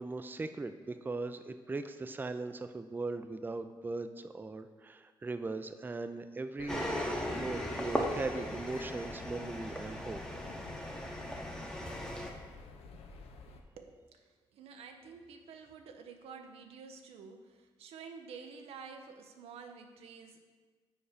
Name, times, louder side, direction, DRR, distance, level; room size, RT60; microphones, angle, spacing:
voice 1, 0.0-6.9 7.3-10.2, right 3 dB, 20° right, 9 dB, 0.3 m, -39 dB
sound 1, 6.6-13.6, left 4 dB, 90° left, 0.5 m, -49 dB
sound 2, 6.7-12.3, equal, 5° left, 0.8 m, -37 dB
voice 2, 13.8-20.4, right 5 dB, 90° right, 5 dB, 0.5 m, -50 dB
4.7 x 4.2 x 4.9 m, 1.4 s
cardioid pair, 60°, 10 cm